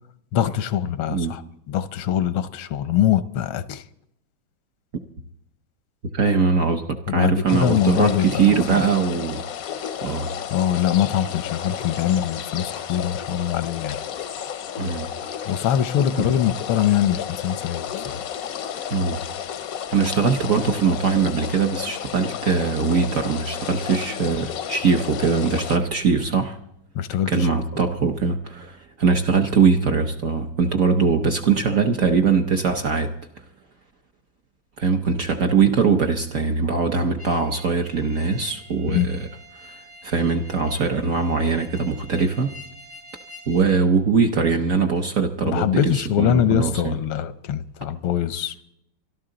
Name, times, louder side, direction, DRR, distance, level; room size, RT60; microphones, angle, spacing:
voice 1, 0.3-1.4 1.7-3.8 7.1-8.8 10.5-14.0 15.5-18.2 26.9-27.5 38.9-39.1 45.4-48.5, left 10 dB, 90° left, 1.6 m, -23 dB
voice 2, 6.1-9.4 10.0-10.3 14.8-15.1 16.2-16.3 18.9-19.2 19.9-26.6 27.3-33.1 34.8-39.3 39.6-42.5 43.5-47.0, right 5 dB, 60° right, 0.9 m, -21 dB
sound 1, 7.5-25.8, left 9 dB, 70° left, 0.8 m, -32 dB
sound 2, 37.2-43.8, equal, 75° right, 4.5 m, -46 dB
24.5 x 12.0 x 3.8 m
omnidirectional pair, 2.2 m